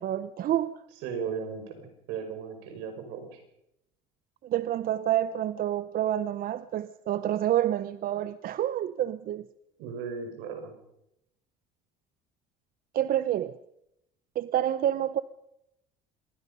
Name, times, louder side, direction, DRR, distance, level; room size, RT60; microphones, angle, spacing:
voice 1, 0.0-0.8 4.4-9.5 12.9-13.6 14.4-15.2, right 11 dB, 50° right, 14 dB, 0.8 m, -28 dB
voice 2, 1.0-3.4 9.8-10.7, right 6 dB, 80° right, 6 dB, 5.2 m, -36 dB
26.0 x 20.0 x 5.4 m, 0.83 s
supercardioid pair, 95°, 18 cm